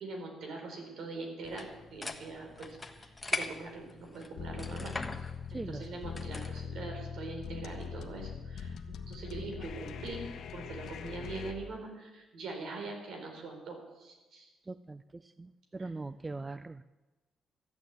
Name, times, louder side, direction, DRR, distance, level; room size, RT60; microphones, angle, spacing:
voice 1, 0.0-10.3 10.5-14.5 15.8-15.9, right 3 dB, 70° right, 2 dB, 4.6 m, -43 dB
sound 1, 1.4-6.7, left 3 dB, 20° left, 1.3 m, -41 dB
sound 2, 4.4-11.5, left 7 dB, 65° left, 1.3 m, -42 dB
voice 2, 5.5-5.9 14.7-16.8, right 3 dB, 20° right, 14 dB, 0.5 m, -41 dB
14.5 x 9.1 x 8.5 m, 1.1 s
cardioid pair, 90°, 0 cm